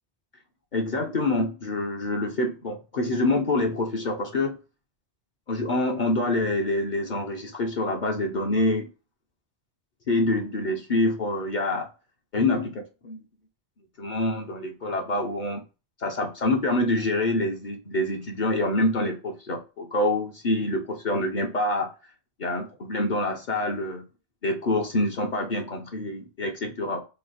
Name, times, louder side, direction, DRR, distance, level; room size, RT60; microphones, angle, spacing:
voice 1, 0.7-4.6 5.5-8.9 10.1-11.9 12.3-13.2 14.0-15.6 16.0-21.9 22.4-24.1 24.4-27.0, left 2 dB, 50° left, 0.7 m, -26 dB
3.3 x 2.5 x 3.9 m
omnidirectional pair, 1.1 m